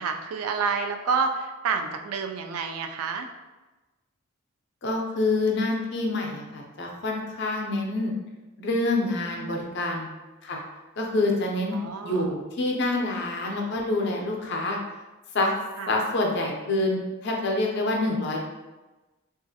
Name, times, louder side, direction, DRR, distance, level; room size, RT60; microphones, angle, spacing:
voice 1, 0.0-3.3 9.3-9.7 11.7-12.3 15.8-15.9, right 5 dB, 80° right, 5 dB, 0.3 m, -29 dB
voice 2, 4.8-8.1 8.6-10.1 10.4-10.6 11.0-11.7 12.0-14.8 15.3-15.5 15.9-18.4, left 2 dB, 50° left, 0 dB, 0.5 m, -26 dB
2.9 x 2.4 x 2.7 m, 1.1 s
head